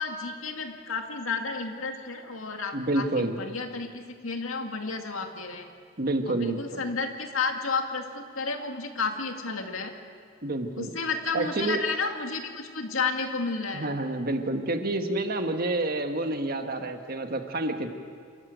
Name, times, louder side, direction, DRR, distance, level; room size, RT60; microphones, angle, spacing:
voice 1, 0.0-5.7 6.3-9.9 10.8-14.0, left 4 dB, 80° left, 4 dB, 2.2 m, -32 dB
voice 2, 2.7-3.4 6.0-6.8 10.4-10.9 11.3-11.8 13.7-18.0, right 2 dB, 45° right, 6 dB, 1.5 m, -28 dB
27.0 x 14.5 x 9.3 m, 2.2 s
head